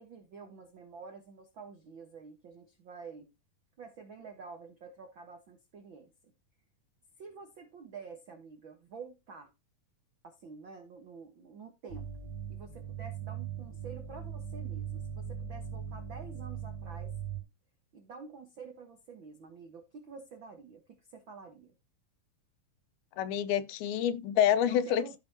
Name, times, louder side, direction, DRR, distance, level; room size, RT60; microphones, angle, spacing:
voice 1, 0.0-3.3 3.8-6.1 7.2-9.5 10.2-12.1 12.5-17.1 17.9-21.7 24.6-25.2, right 5 dB, 90° right, 1.0 m, -49 dB
sound 1, 11.9-17.4, right 8 dB, 45° right, 3.4 m, -40 dB
voice 2, 23.2-25.2, left 10 dB, 85° left, 2.6 m, -27 dB
14.5 x 5.6 x 2.8 m
omnidirectional pair, 4.3 m